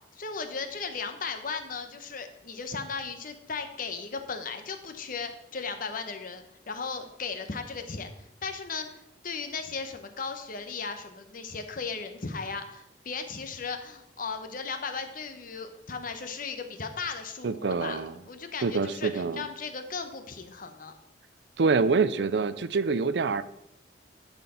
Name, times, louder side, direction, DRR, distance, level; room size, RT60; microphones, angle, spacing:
voice 1, 0.1-20.9, left 5 dB, 50° left, 7 dB, 0.9 m, -36 dB
voice 2, 17.4-18.2 18.6-19.5 21.6-23.4, right 4 dB, 65° right, 14 dB, 0.5 m, -26 dB
10.5 x 4.4 x 5.6 m, 0.82 s
head